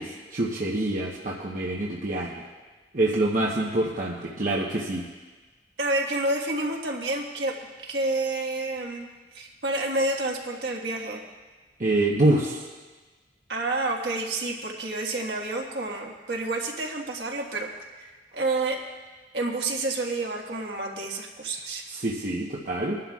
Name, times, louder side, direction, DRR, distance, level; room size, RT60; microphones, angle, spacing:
voice 1, 0.0-2.4 2.9-5.1 11.8-12.6 21.9-23.0, right 1 dB, 45° right, -3 dB, 1.0 m, -26 dB
voice 2, 5.8-7.5 7.8-9.1 9.3-11.2 13.5-17.7 18.0-18.8 19.3-21.9, right 2 dB, 65° right, 0 dB, 1.6 m, -29 dB
23.0 x 11.5 x 2.4 m, 1.3 s
head